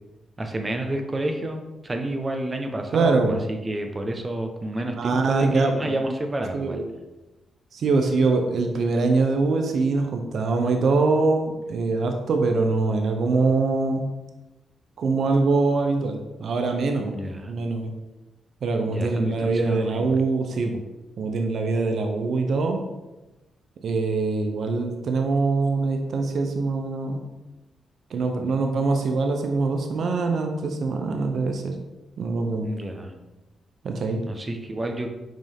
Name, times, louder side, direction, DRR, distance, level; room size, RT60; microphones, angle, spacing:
voice 1, 0.4-6.8 17.0-17.5 18.9-20.2 32.6-33.1 34.3-35.1, right 1 dB, 30° right, 4 dB, 0.9 m, -30 dB
voice 2, 2.9-3.4 5.0-6.0 6.5-6.8 7.7-14.1 15.0-17.1 17.5-17.9 18.6-20.8 21.2-22.8 23.8-27.2 28.1-31.7 32.2-32.7 33.8-34.2, right 3 dB, 70° right, 4 dB, 0.7 m, -23 dB
6.0 x 4.5 x 3.6 m, 1.1 s
supercardioid pair, 55°, 0 cm